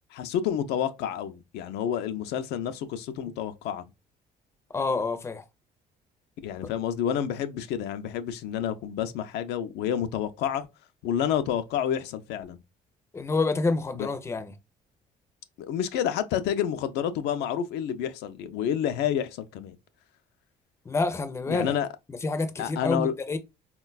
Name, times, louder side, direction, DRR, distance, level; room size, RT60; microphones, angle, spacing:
voice 1, 0.1-3.8 6.4-10.7 11.0-12.6 14.0-14.1 15.6-19.8 21.5-21.9 22.6-23.1, left 9 dB, 80° left, 0.4 m, -29 dB
voice 2, 4.7-5.4 13.1-14.5 20.9-21.7 22.2-23.4, left 3 dB, 15° left, 0.4 m, -28 dB
3.8 x 2.2 x 2.2 m
cardioid pair, 110°, 17 cm